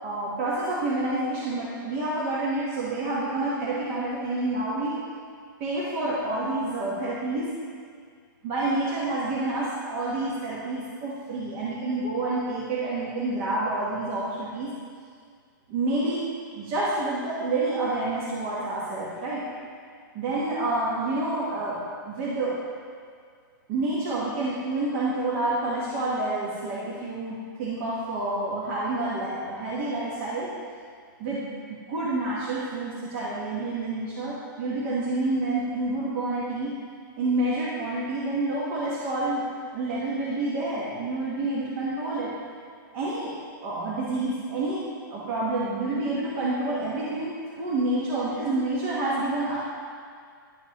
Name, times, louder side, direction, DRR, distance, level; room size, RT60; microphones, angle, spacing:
voice 1, 0.0-5.0 5.6-7.5 8.4-14.7 15.7-16.3 16.5-19.4 20.1-21.8 22.0-22.6 23.7-30.5 31.2-31.5 31.9-36.8 37.2-39.5 39.7-42.3 42.9-43.3 43.6-44.8 45.1-47.3 47.6-49.6, right 2 dB, 30° right, -8 dB, 1.2 m, -28 dB
10.5 x 7.0 x 2.9 m, 2.1 s
hypercardioid pair, 170°, 12 cm